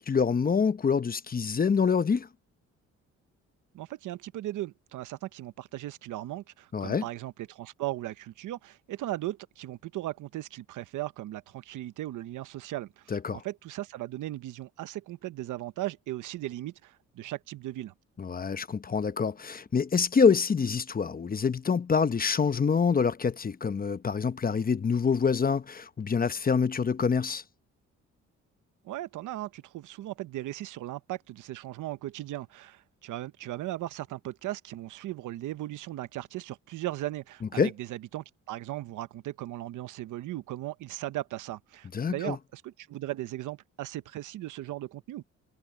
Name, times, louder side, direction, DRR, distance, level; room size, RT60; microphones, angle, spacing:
voice 1, 0.0-2.3 6.7-7.0 13.1-13.4 18.2-27.4 37.6-37.7 41.9-42.4, left 5 dB, 30° left, 0.9 m, -26 dB
voice 2, 3.7-17.9 28.8-45.2, right 15 dB, 80° right, 1.0 m, -37 dB
cardioid pair, 90°, 30 cm